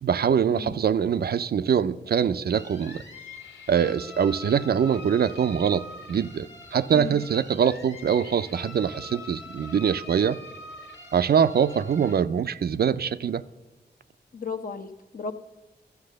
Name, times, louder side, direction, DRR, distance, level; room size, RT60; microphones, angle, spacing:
voice 1, 0.0-3.0 3.7-10.4 11.1-13.4, right 7 dB, 60° right, 0.4 m, -23 dB
sound 1, 2.5-12.1, left 3 dB, 85° left, 2.0 m, -44 dB
voice 2, 14.3-15.3, left 5 dB, 50° left, 0.9 m, -34 dB
12.0 x 7.5 x 6.5 m
cardioid pair, 55°, 18 cm